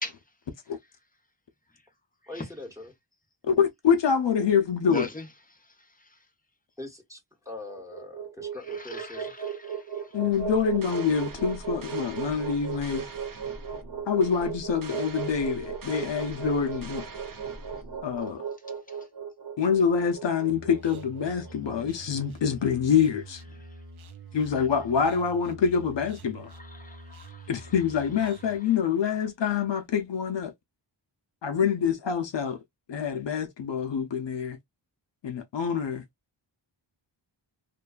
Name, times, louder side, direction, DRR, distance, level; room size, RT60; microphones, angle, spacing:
voice 1, 2.3-2.9 6.8-9.3, left 2 dB, 5° right, 1.1 m, -42 dB
voice 2, 3.4-5.1 10.1-13.1 14.1-17.0 18.0-18.4 19.6-23.4 24.3-26.5 27.5-30.5 31.4-32.6 32.9-34.6 35.2-36.0, left 7 dB, 65° left, 0.6 m, -26 dB
voice 3, 4.8-5.3 8.8-10.1 21.8-21.9 26.5-27.5, left 2 dB, 20° left, 0.8 m, -40 dB
sound 1, 7.5-21.8, right 7 dB, 65° right, 1.4 m, -36 dB
sound 2, 10.3-18.2, right 2 dB, 45° right, 0.7 m, -44 dB
sound 3, 20.5-28.6, right 1 dB, 85° right, 0.7 m, -46 dB
2.6 x 2.2 x 2.3 m
wide cardioid pair, 65°, 47 cm